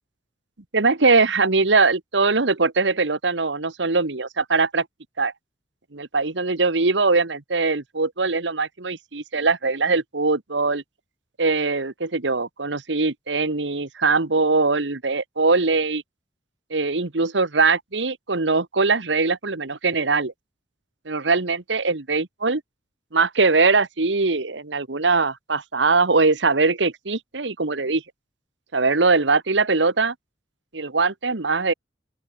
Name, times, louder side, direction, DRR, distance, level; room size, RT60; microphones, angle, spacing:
voice 1, 0.7-4.8 5.2-5.3 5.9-10.8 11.4-16.0 16.7-20.3 21.0-22.6 23.1-28.0 28.7-30.1 30.7-31.7, right 3 dB, 70° right, 1.5 m, -21 dB
open air
head